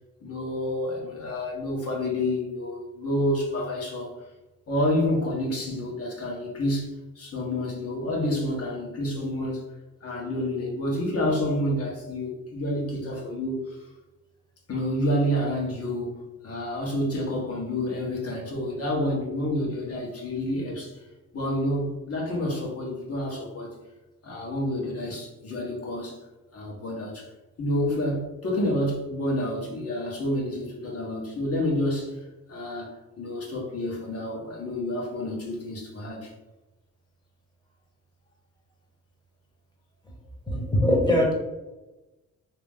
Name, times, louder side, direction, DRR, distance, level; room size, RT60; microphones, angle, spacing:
voice 1, 0.2-4.1 4.7-9.6 10.0-13.8 14.7-16.1 16.4-21.0 21.3-23.7 24.2-26.2 26.5-27.3 27.6-32.1 32.5-36.3, left 1 dB, 50° left, -2 dB, 1.3 m, -29 dB
voice 2, 40.5-41.3, left 1 dB, 15° left, -1 dB, 1.2 m, -21 dB
3.0 x 2.9 x 3.6 m, 1.1 s
cardioid pair, 90°, 30 cm